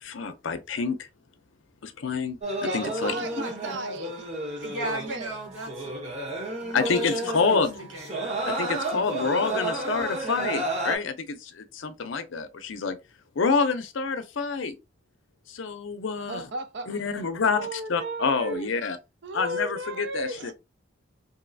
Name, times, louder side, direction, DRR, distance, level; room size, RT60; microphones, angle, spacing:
voice 1, 0.0-1.1 1.8-2.4 2.7-3.1 6.7-7.9 8.6-13.0 13.4-14.7 15.5-16.5 16.9-19.0 19.3-20.5, left 5 dB, 75° left, 0.6 m, -27 dB
sound 1, 2.4-11.0, right 2 dB, 35° right, 0.8 m, -32 dB
voice 2, 2.6-4.3 4.6-5.4 16.3-17.0 17.4-18.7 19.2-20.5, right 1 dB, 60° right, 0.5 m, -35 dB
voice 3, 3.1-3.8 4.6-6.0 6.6-7.6 7.9-9.4 9.8-10.2, right 1 dB, 80° right, 1.5 m, -39 dB
3.1 x 2.6 x 2.6 m
head